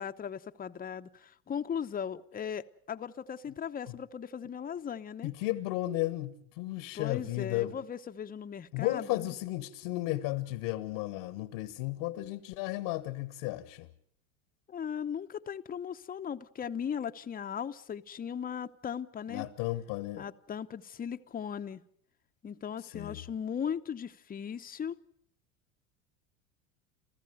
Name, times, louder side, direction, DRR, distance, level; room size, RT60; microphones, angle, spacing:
voice 1, 0.0-5.3 6.9-9.3 14.7-19.4 20.2-21.8 22.4-25.0, left 8 dB, 20° left, 0.9 m, -38 dB
voice 2, 5.2-7.8 8.7-13.9 19.3-20.2 22.9-23.2, left 17 dB, 60° left, 1.3 m, -34 dB
28.5 x 15.0 x 7.8 m
hypercardioid pair, 80°, 41 cm